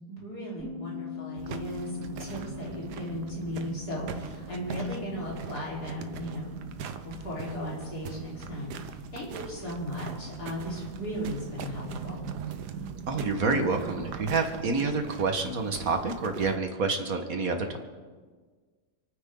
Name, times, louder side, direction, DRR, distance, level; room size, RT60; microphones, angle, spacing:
voice 1, 0.1-6.6 7.0-12.2, equal, 75° left, -5 dB, 4.7 m, -36 dB
Bass guitar, 0.6-6.8, left 6 dB, 5° right, 2.8 m, -44 dB
sound 1, 1.4-16.6, right 6 dB, 85° right, 1.4 m, -40 dB
voice 2, 13.1-17.8, right 4 dB, 60° right, 5 dB, 1.8 m, -28 dB
28.0 x 9.6 x 3.8 m, 1.5 s
omnidirectional pair, 1.7 m